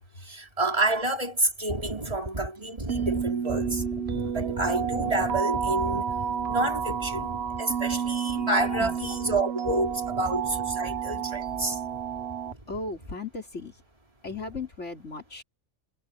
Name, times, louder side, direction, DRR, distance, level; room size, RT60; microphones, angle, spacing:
voice 1, 0.3-11.8, right 2 dB, 25° right, 3.9 m, -29 dB
sound 1, 2.9-12.5, right 7 dB, 60° right, 1.1 m, -30 dB
voice 2, 12.7-13.8 14.2-15.4, left 3 dB, 70° left, 4.2 m, -37 dB
omnidirectional pair, 1.3 m